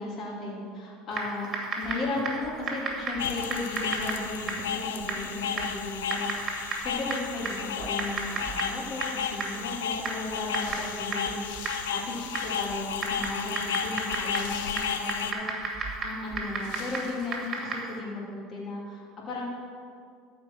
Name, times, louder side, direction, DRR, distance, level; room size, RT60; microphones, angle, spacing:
voice 1, 0.0-1.5 1.8-19.4, left 2 dB, 45° left, -4 dB, 2.9 m, -35 dB
Typing, 1.1-18.0, right 3 dB, 35° right, 2.7 m, -35 dB
sound 1, 3.2-15.3, left 7 dB, 90° left, 0.6 m, -33 dB
sound 2, 10.4-13.0 13.3-13.4 14.2-15.4 16.2-16.3 16.6-17.7, left 8 dB, 70° left, 0.9 m, -47 dB
13.5 x 5.2 x 6.2 m, 2.3 s
supercardioid pair, 95°, 0 cm